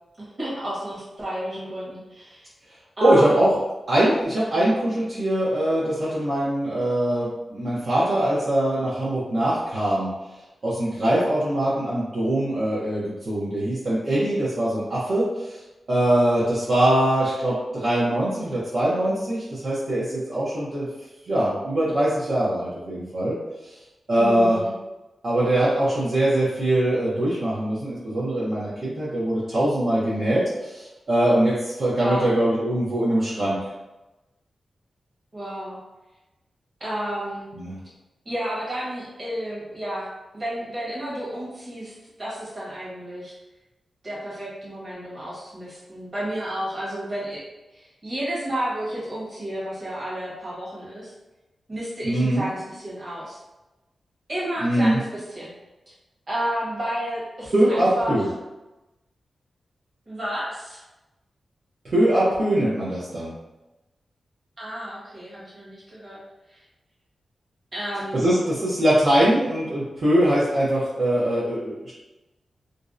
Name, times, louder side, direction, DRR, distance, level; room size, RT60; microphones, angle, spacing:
voice 1, 0.2-2.5 3.0-3.4 24.2-24.7 32.0-32.4 35.3-35.8 36.8-37.4 38.2-40.1 40.3-43.3 44.0-47.4 47.7-51.1 51.7-53.4 54.3-55.5 56.3-58.2 60.1-60.8 64.6-66.2 66.5-66.6 67.7-68.2, right 1 dB, 35° right, -7 dB, 1.0 m, -31 dB
voice 2, 3.0-3.5 3.9-10.1 10.6-15.6 15.9-20.9 21.3-23.4 24.1-24.6 25.2-33.6 37.5-37.8 52.0-52.4 54.6-55.0 57.5-58.3 61.8-63.3 68.1-71.9, right 1 dB, 55° right, -9 dB, 0.6 m, -22 dB
2.5 x 2.0 x 2.4 m, 1.0 s
wide cardioid pair, 125°, 0 cm